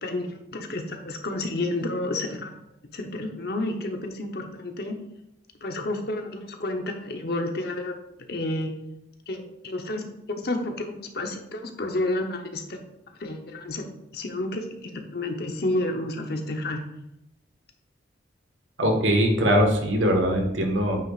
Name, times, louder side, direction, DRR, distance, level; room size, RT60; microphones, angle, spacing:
voice 1, 0.0-2.5 2.9-5.0 5.6-8.0 8.3-8.7 9.3-12.8 13.2-13.9 14.1-16.8, left 2 dB, 55° left, 4 dB, 0.9 m, -30 dB
voice 2, 18.8-21.0, equal, 85° right, 2 dB, 1.5 m, -21 dB
9.0 x 6.0 x 2.5 m, 0.84 s
head